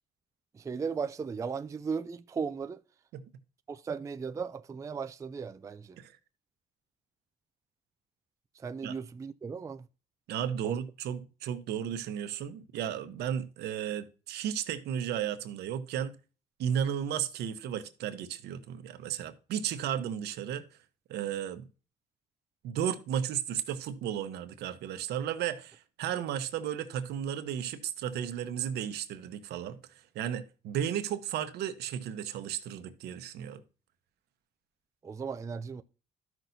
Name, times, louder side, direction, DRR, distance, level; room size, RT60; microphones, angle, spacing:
voice 1, 0.5-2.8 3.7-6.0 8.6-9.8 10.6-10.8 35.0-35.8, right 5 dB, 20° right, 0.3 m, -36 dB
voice 2, 10.3-16.1 16.6-20.6 21.1-21.7 22.6-33.6, right 9 dB, 75° right, 0.9 m, -34 dB
13.0 x 6.0 x 2.7 m
cardioid pair, 110°, 17 cm